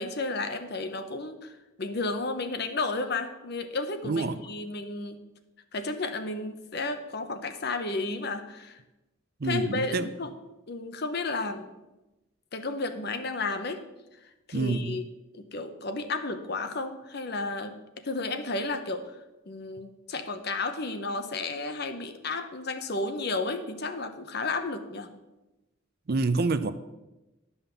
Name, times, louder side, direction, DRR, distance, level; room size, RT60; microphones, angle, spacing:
voice 1, 0.0-5.2 5.7-8.8 9.4-10.3 10.7-11.7 12.5-13.8 14.5-15.0 15.3-17.7 18.0-19.2 19.5-25.1, left 3 dB, 50° left, 8 dB, 0.9 m, -32 dB
voice 2, 4.0-4.4 9.4-10.1 14.5-15.0 26.1-26.7, right 3 dB, 45° right, 12 dB, 0.5 m, -27 dB
11.0 x 5.6 x 7.0 m, 1.0 s
head